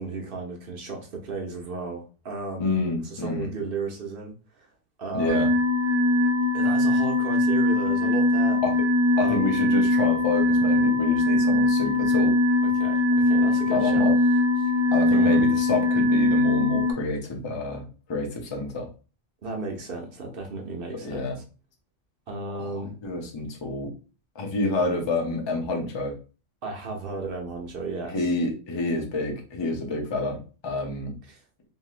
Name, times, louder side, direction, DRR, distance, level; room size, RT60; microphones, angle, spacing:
voice 1, 0.0-2.8 3.0-4.7 5.0-5.5 6.5-8.6 9.2-9.5 12.7-14.1 14.6-14.7 15.1-15.5 19.4-21.2 22.3-22.9 26.6-28.3 31.3-31.4, right 3 dB, 55° right, 1 dB, 0.8 m, -34 dB
voice 2, 2.6-3.5 5.1-5.5 8.6-8.7 9.2-12.4 13.7-14.2 14.9-18.9 21.0-21.4 22.5-23.9 24.3-26.2 28.1-31.1, left 2 dB, 35° left, 1 dB, 0.5 m, -28 dB
sound 1, 5.3-16.9, left 2 dB, 90° right, 0.9 m, -21 dB
3.0 x 2.7 x 2.4 m, 0.35 s
omnidirectional pair, 1.3 m